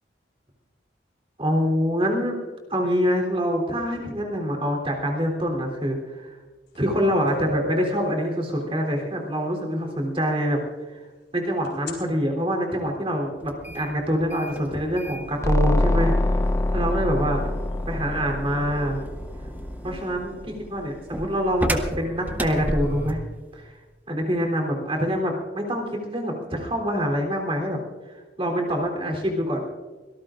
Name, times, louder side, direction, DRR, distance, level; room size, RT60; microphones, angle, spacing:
voice 1, 1.4-2.4 2.7-6.3 6.7-10.6 10.9-11.0 11.3-16.4 16.7-17.4 17.9-19.0 19.8-23.2 23.5-23.7 24.1-27.8 28.4-29.6, equal, 30° right, 1 dB, 3.4 m, -25 dB
sound 1, 6.7-6.8 7.3-9.0 11.6-11.9, left 1 dB, 75° left, 4.4 m, -34 dB
sound 2, 13.4-23.3, equal, 10° right, 0.9 m, -34 dB
sound 3, 15.4-20.1, left 2 dB, 15° left, 0.5 m, -25 dB
24.5 x 18.5 x 2.5 m, 1.3 s
head